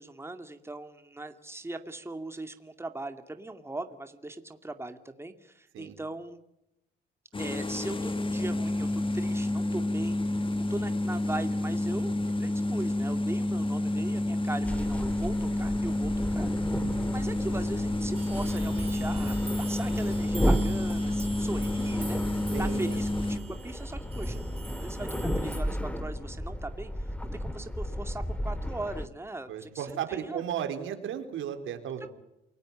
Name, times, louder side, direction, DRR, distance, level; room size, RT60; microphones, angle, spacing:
voice 1, 0.0-6.4 7.4-10.2 10.6-16.5 17.1-24.4 24.8-30.4 32.0-32.1, right 2 dB, 10° right, 7 dB, 2.4 m, -39 dB
sound 1, 7.3-23.4, left 1 dB, 25° left, 2.6 m, -29 dB
sound 2, 14.6-29.1, equal, 5° left, 2.4 m, -33 dB
voice 2, 16.8-17.2 22.5-23.0 29.5-32.1, right 9 dB, 80° right, 7 dB, 4.1 m, -35 dB
sound 3, 18.1-25.6, right 4 dB, 30° right, 4.2 m, -47 dB
28.5 x 19.0 x 8.7 m, 0.86 s
cardioid pair, 90°, 20 cm